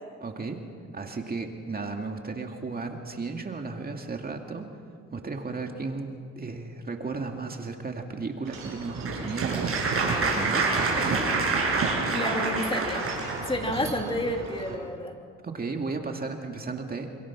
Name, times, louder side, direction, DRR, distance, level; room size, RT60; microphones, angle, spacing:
voice 1, 0.2-0.6 0.9-4.7 5.1-11.3 13.2-13.5 15.4-17.2, right 4 dB, 30° right, 3 dB, 2.4 m, -34 dB
Wind chime / Wind, 8.4-14.7, right 4 dB, 60° right, 6.8 m, -34 dB
Applause, 8.6-13.5, right 3 dB, 45° right, 6.8 m, -27 dB
voice 2, 12.1-13.1 13.5-15.2, left 1 dB, 15° left, 3 dB, 3.0 m, -30 dB
27.5 x 26.0 x 6.1 m, 2.2 s
cardioid pair, 90°, 30 cm